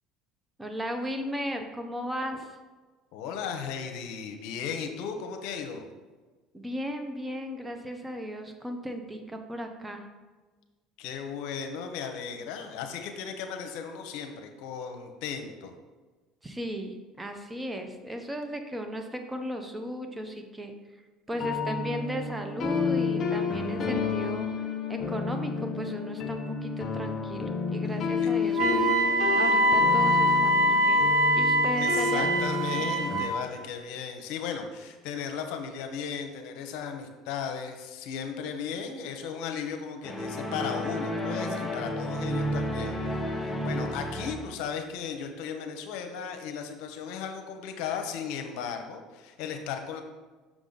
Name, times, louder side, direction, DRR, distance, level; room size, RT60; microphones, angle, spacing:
voice 1, 0.6-2.5 6.5-10.0 16.4-20.7 21.3-24.5 24.9-31.1 31.3-32.3, equal, 15° right, 5 dB, 0.8 m, -36 dB
voice 2, 3.1-5.8 11.0-15.7 28.2-28.3 31.8-43.2 43.4-50.0, left 7 dB, 75° left, 5 dB, 0.8 m, -36 dB
sound 1, 21.3-33.2, left 5 dB, 40° left, 1.1 m, -30 dB
Wind instrument woodwind instrument, 28.5-33.4, equal, 60° right, 0.8 m, -23 dB
sound 2, 40.0-44.7, equal, 5° left, 1.1 m, -32 dB
6.2 x 4.9 x 4.0 m, 1.3 s
supercardioid pair, 85°, 0 cm